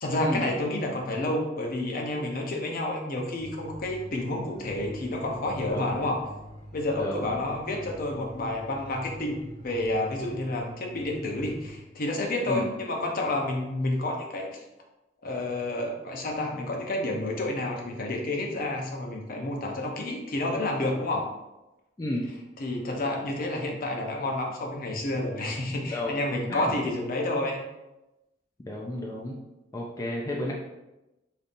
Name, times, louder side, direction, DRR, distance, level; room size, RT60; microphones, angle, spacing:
voice 1, 0.0-6.2 6.7-14.6 15.2-21.3 22.6-27.6, left 1 dB, 50° left, 1 dB, 0.7 m, -30 dB
sound 1, 3.4-11.8, equal, 50° right, 1.1 m, -45 dB
voice 2, 5.7-6.0 7.0-7.3 12.5-12.6 22.0-22.3 25.9-26.7 28.6-29.4 29.7-30.5, left 1 dB, 20° left, -2 dB, 0.4 m, -32 dB
5.1 x 2.7 x 2.5 m, 0.99 s
head